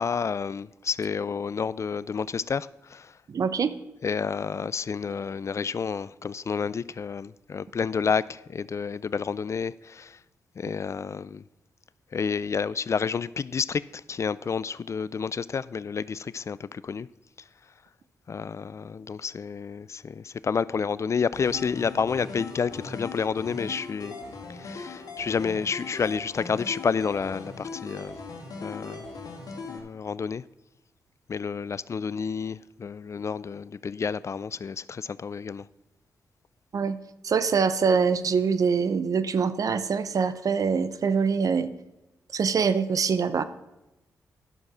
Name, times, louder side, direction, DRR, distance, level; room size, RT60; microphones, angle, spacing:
voice 1, 0.0-3.1 4.0-10.2 10.6-11.4 12.1-17.1 18.3-24.1 24.5-28.2 28.6-29.1 29.7-30.4 31.3-35.7, left 6 dB, 45° left, 0.3 m, -30 dB
voice 2, 3.3-3.7 36.7-37.0 37.2-41.7 42.3-43.4, right 5 dB, 60° right, 0.7 m, -24 dB
sound 1, 21.3-29.8, left 3 dB, 65° left, 2.1 m, -39 dB
11.0 x 6.5 x 6.0 m
supercardioid pair, 45°, 7 cm